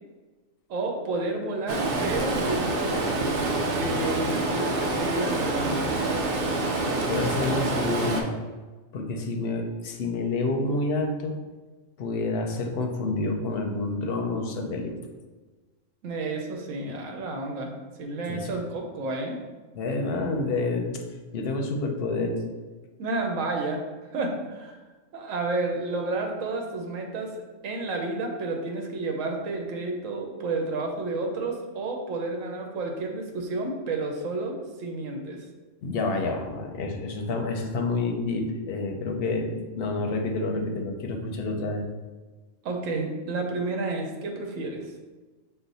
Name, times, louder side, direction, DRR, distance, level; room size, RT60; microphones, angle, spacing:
voice 1, 0.7-3.1 3.7-5.9 16.0-19.4 23.0-23.8 24.1-24.8 25.1-35.4 42.6-44.9, right 2 dB, 80° right, 2 dB, 1.1 m, -31 dB
Stream, 1.7-8.2, right 2 dB, 55° right, 0.7 m, -27 dB
voice 2, 7.1-8.3 8.9-11.4 12.0-14.9 18.3-18.5 19.7-21.0 21.3-22.4 35.8-41.8, left 3 dB, 60° left, 3 dB, 0.7 m, -28 dB
6.0 x 2.1 x 4.0 m, 1.3 s
omnidirectional pair, 1.3 m